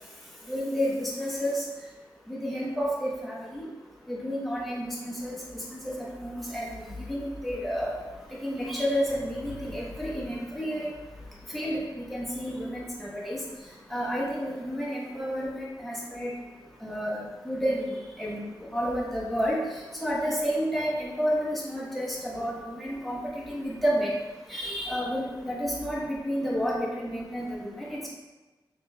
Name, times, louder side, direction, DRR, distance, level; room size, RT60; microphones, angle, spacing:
voice 1, 0.5-1.6 2.3-3.6 4.1-7.9 8.4-10.9 11.5-13.4 13.9-16.3 16.8-18.4 18.7-19.6 20.0-23.2 23.5-24.1 24.5-28.1, equal, ahead, -6 dB, 1.2 m, -30 dB
5.9 x 3.1 x 2.4 m, 1.2 s
wide cardioid pair, 85°, 8 cm